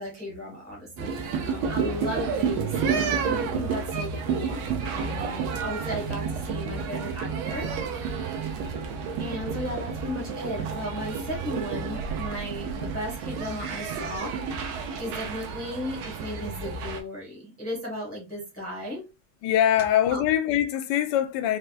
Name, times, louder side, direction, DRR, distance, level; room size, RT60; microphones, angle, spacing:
voice 1, 0.0-4.6 4.9-7.7 8.7-14.4 15.0-19.0 20.1-20.2, equal, 5° left, 0.7 m, -35 dB
sound 1, 1.0-17.0, right 6 dB, 85° right, 1.5 m, -30 dB
voice 2, 19.4-21.6, left 11 dB, 75° left, 1.0 m, -23 dB
4.5 x 2.2 x 2.4 m
omnidirectional pair, 2.3 m